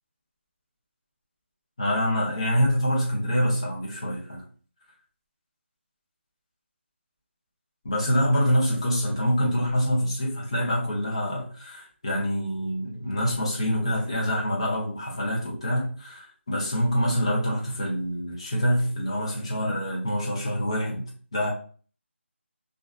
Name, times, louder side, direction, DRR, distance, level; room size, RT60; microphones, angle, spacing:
voice 1, 1.8-4.4 7.8-21.0 21.3-21.5, equal, 25° left, 0.6 m, -26 dB
2.4 x 2.2 x 2.3 m
figure-of-eight pair, 180°, 7 cm